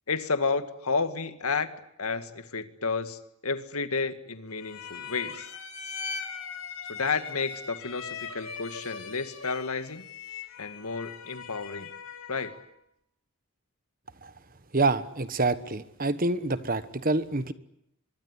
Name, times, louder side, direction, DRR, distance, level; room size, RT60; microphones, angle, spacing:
voice 1, 0.1-1.7 2.0-5.5 6.9-10.0 10.6-11.9 12.3-12.6, left 4 dB, 90° left, 10 dB, 2.0 m, -31 dB
sound 1, 4.6-12.7, left 6 dB, 70° left, 4.5 m, -40 dB
voice 2, 14.7-17.5, right 2 dB, 40° right, 13 dB, 1.3 m, -27 dB
24.0 x 23.5 x 9.8 m, 0.77 s
head